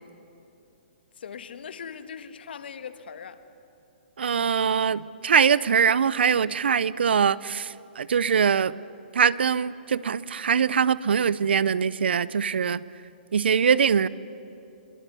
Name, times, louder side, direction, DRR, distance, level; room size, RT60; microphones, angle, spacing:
voice 1, 1.1-3.4, left 7 dB, 70° left, 1.4 m, -40 dB
voice 2, 4.2-8.7 9.1-12.8 13.3-14.1, right 7 dB, 80° right, 0.6 m, -22 dB
24.5 x 22.5 x 6.9 m
hypercardioid pair, 135°, 6 cm